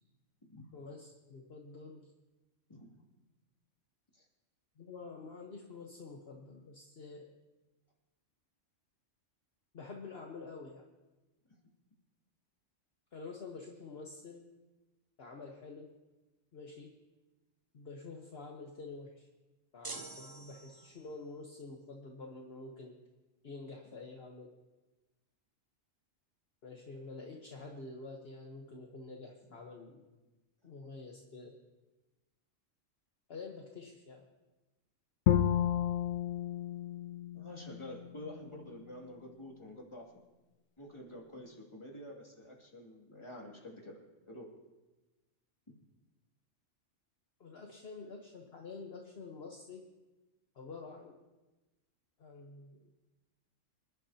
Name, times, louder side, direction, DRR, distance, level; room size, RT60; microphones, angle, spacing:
voice 1, 0.7-2.1 4.8-7.3 9.7-10.9 13.1-14.5 15.2-15.9 16.5-16.9 17.7-19.3 19.7-22.9 23.4-24.5 26.6-30.0 30.6-31.6 33.3-34.2 47.4-49.8 50.5-51.2 52.2-52.9, left 3 dB, 50° left, 1 dB, 1.3 m, -48 dB
sound 1, 19.8-21.2, right 3 dB, 30° right, 0.4 m, -46 dB
Bowed string instrument, 35.3-38.4, left 10 dB, 85° left, 1.0 m, -32 dB
voice 2, 37.3-40.1 40.8-44.0 44.3-44.5 45.7-45.8, left 1 dB, 20° left, -2 dB, 2.5 m, -48 dB
26.5 x 11.5 x 2.8 m, 1.1 s
omnidirectional pair, 1.3 m